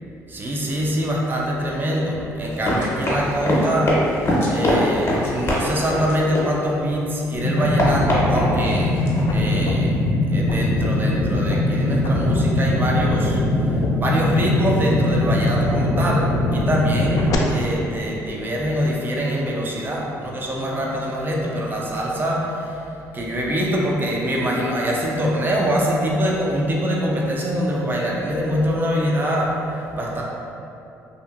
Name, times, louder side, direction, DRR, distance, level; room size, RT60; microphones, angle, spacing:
voice 1, 0.3-4.0 4.5-9.0 9.3-9.9 10.3-13.4 14.0-22.8 23.1-29.6 29.9-30.2, equal, 25° right, -3 dB, 0.5 m, -24 dB
Run, 2.5-7.0 7.3-9.2, left 1 dB, 40° left, 0.8 m, -23 dB
sound 1, 7.4-17.4, left 1 dB, 55° left, 0.4 m, -21 dB
2.7 x 2.5 x 2.4 m, 2.7 s
supercardioid pair, 60°, 7 cm